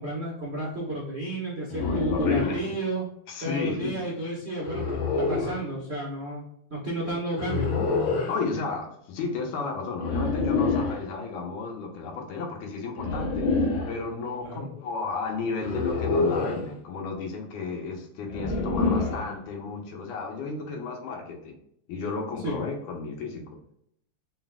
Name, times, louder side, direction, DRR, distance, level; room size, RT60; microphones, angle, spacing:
voice 1, 0.0-3.1 3.4-6.4 6.7-7.9 14.4-14.7 22.4-22.6, right 1 dB, 50° right, -7 dB, 0.8 m, -32 dB
sound 1, 1.7-2.7 4.6-5.6 7.4-8.4 10.0-11.0 13.0-14.0 15.6-16.6 18.3-19.3, left 3 dB, 70° left, 1.2 m, -26 dB
voice 2, 1.8-2.6 3.3-3.9 7.0-7.2 8.3-21.6 21.9-23.4, left 4 dB, 85° left, 2 dB, 2.5 m, -33 dB
5.3 x 4.0 x 2.3 m, 0.73 s
omnidirectional pair, 3.4 m